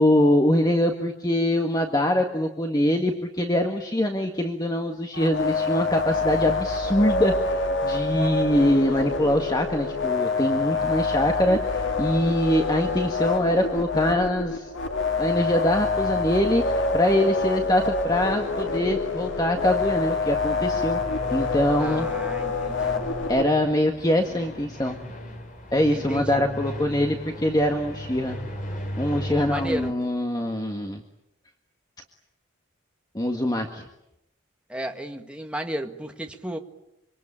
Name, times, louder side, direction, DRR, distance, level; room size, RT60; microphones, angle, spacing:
voice 1, 0.0-14.7 15.2-21.0 21.3-22.1 23.3-25.0 25.7-28.4 29.0-31.0 33.1-33.8, left 1 dB, 20° left, 3 dB, 1.7 m, -23 dB
sound 1, 5.1-23.4, left 3 dB, 65° left, 2.4 m, -26 dB
sound 2, 18.2-29.9, equal, 40° left, 4.2 m, -38 dB
voice 2, 21.8-23.1 25.9-26.4 29.3-30.0 34.7-36.6, right 1 dB, 5° right, 3 dB, 1.8 m, -33 dB
26.5 x 25.0 x 8.8 m, 0.88 s
head